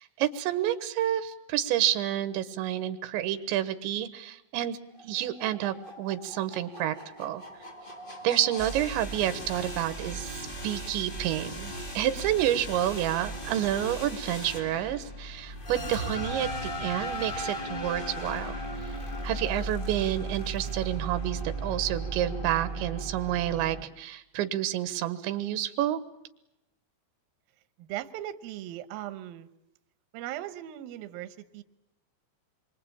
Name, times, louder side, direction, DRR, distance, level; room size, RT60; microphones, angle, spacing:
voice 1, 0.0-4.8 5.0-7.4 8.2-18.5 19.2-26.0, right 12 dB, 90° right, 12 dB, 3.6 m, -29 dB
sound 1, 5.0-23.8, right 1 dB, 20° left, 1.3 m, -37 dB
voice 2, 27.8-29.5 30.1-31.6, right 13 dB, 70° right, 11 dB, 2.6 m, -38 dB
27.5 x 24.0 x 8.8 m, 0.89 s
omnidirectional pair, 5.1 m